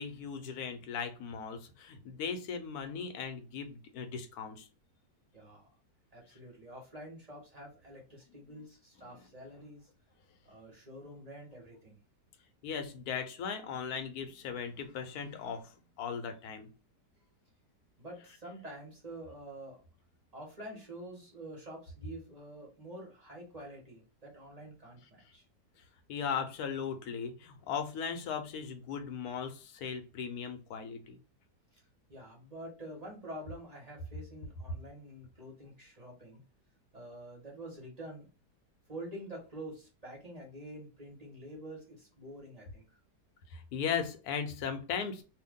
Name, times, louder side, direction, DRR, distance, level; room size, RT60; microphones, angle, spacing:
voice 1, 0.0-4.7 12.6-16.7 26.1-31.2 43.5-45.2, left 6 dB, 70° left, 6 dB, 1.1 m, -38 dB
voice 2, 5.3-5.7 6.1-9.9 10.4-12.0 18.0-19.8 20.3-25.4 31.7-31.8 32.1-36.4 36.9-38.3 38.9-42.8, right 1 dB, 25° right, -2 dB, 1.2 m, -47 dB
2.8 x 2.5 x 3.6 m, 0.34 s
omnidirectional pair, 1.8 m